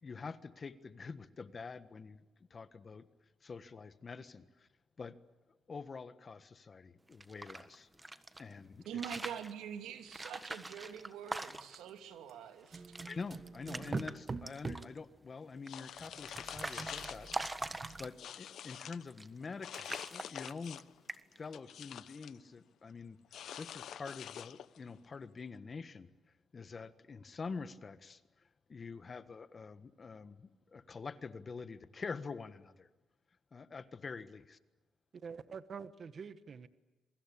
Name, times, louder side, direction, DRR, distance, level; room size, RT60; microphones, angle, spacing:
voice 1, 0.0-2.2 2.5-3.0 3.4-4.7 5.0-5.1 5.7-7.9 8.4-9.0 13.0-17.3 18.0-20.8 21.3-26.1 26.5-32.9 33.5-34.6, left 4 dB, 35° left, 12 dB, 1.5 m, -46 dB
sound 1, 7.1-8.4 8.9-9.5 10.1-11.9 12.3-12.4 12.6-13.1 13.5-14.1 14.5-15.0 15.7-18.4 19.1-19.5 19.7-20.8 21.1-21.5, right 2 dB, 15° right, 1.5 m, -43 dB
voice 2, 8.9-12.8, right 9 dB, 85° right, 7 dB, 2.7 m, -45 dB
sound 2, 12.7-15.0 16.0-18.1, right 4 dB, 30° right, 1.5 m, -44 dB
sound 3, 15.7-17.5 17.9-19.0 19.6-21.0 21.3-22.4 23.3-24.8, left 10 dB, 70° left, 0.8 m, -47 dB
voice 3, 35.1-36.7, right 6 dB, 45° right, 13 dB, 1.2 m, -46 dB
27.5 x 24.0 x 8.6 m, 1.2 s
cardioid pair, 90°, 0 cm